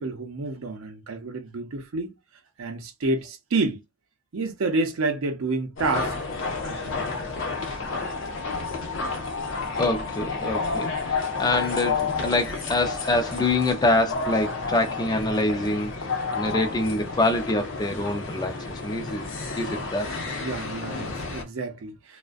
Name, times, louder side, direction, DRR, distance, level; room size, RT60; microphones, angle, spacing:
voice 1, 0.0-2.1 2.6-3.8 4.3-6.3 6.6-7.0 9.1-9.2 20.4-22.2, right 3 dB, 85° right, 0.5 m, -29 dB
sound 1, 5.8-21.4, left 4 dB, 65° left, 0.7 m, -31 dB
voice 2, 9.7-15.9 16.3-19.3 19.6-20.2, left 2 dB, 20° left, 0.4 m, -25 dB
2.4 x 2.1 x 2.4 m
head